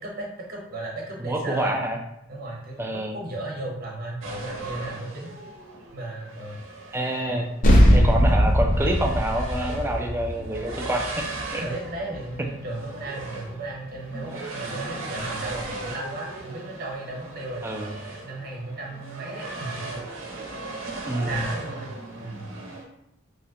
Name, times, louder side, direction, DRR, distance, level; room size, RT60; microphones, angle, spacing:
voice 1, 0.0-1.7 2.3-5.3 5.9-6.6 7.3-7.4 11.6-17.7 18.2-20.0 21.2-22.5, right 2 dB, 50° right, -1 dB, 0.9 m, -35 dB
voice 2, 1.2-2.0 2.8-3.1 6.9-7.5 7.9-11.3 11.5-11.7 17.6-17.9 21.1-21.4, right 1 dB, 10° right, 2 dB, 0.4 m, -27 dB
sound 1, 4.2-22.8, right 2 dB, 80° right, 0.7 m, -38 dB
sound 2, 7.6-12.4, equal, 45° left, 0.6 m, -20 dB
3.1 x 2.8 x 2.8 m, 0.80 s
head